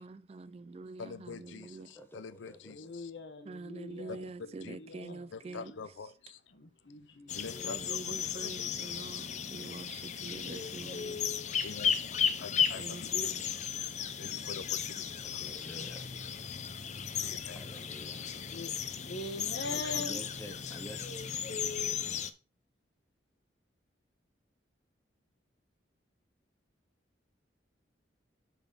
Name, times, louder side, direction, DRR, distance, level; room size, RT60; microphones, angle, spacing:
voice 1, 0.0-2.0 3.4-5.7 7.6-11.3 12.7-13.4, right 3 dB, 35° right, 0.3 m, -45 dB
voice 2, 1.0-3.1 4.1-4.2 4.6-4.8 5.3-6.4 7.3-8.1 8.4-8.5 11.6-13.1 14.2-15.4 17.2-17.6 19.6-19.9, left 5 dB, 85° left, 0.5 m, -46 dB
voice 3, 1.9-2.9 15.2-18.4 19.7-21.1, equal, 10° left, 1.0 m, -50 dB
voice 4, 2.6-5.9 6.5-7.7 8.1-8.3 14.2-14.7 18.4-18.8 19.1-20.3, left 2 dB, 65° left, 1.2 m, -44 dB
sound 1, 7.3-22.3, left 7 dB, 40° left, 0.5 m, -35 dB
7.2 x 4.0 x 5.4 m
head